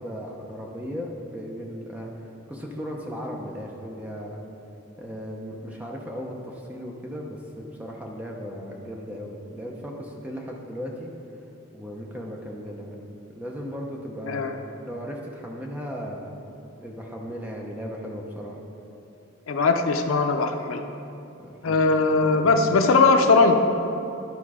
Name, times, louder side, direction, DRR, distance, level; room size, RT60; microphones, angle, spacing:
voice 1, 0.0-4.4 5.0-11.1 11.7-12.9 13.3-14.5 14.9-16.3 16.8-18.6 21.4-21.8 22.2-22.8, equal, 5° right, -1 dB, 0.7 m, -36 dB
voice 2, 19.5-20.8 21.6-23.6, left 3 dB, 80° left, 6 dB, 0.5 m, -19 dB
11.0 x 4.6 x 4.8 m, 2.8 s
head